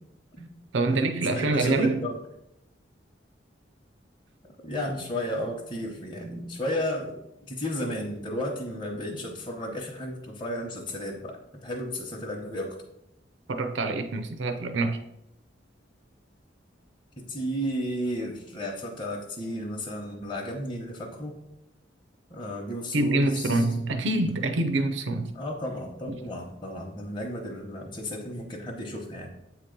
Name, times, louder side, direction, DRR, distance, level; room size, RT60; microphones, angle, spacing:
voice 1, 0.7-2.1 13.5-15.0 22.9-25.3, right 2 dB, 80° right, 0.5 m, -25 dB
voice 2, 1.3-2.2 4.6-12.7 17.2-21.4 22.3-23.6 25.3-29.3, equal, 25° left, 0.8 m, -33 dB
8.2 x 2.9 x 5.1 m
head